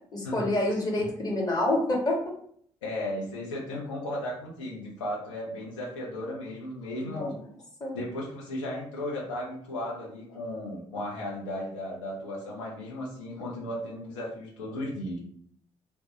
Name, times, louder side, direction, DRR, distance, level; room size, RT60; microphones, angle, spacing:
voice 1, 0.1-2.4 7.0-7.3 7.8-8.0, left 1 dB, 25° left, -1 dB, 0.9 m, -27 dB
voice 2, 2.8-7.3 7.9-15.2, left 1 dB, 75° left, -3 dB, 0.7 m, -35 dB
2.1 x 2.1 x 2.8 m, 0.62 s
figure-of-eight pair, 40°, 16 cm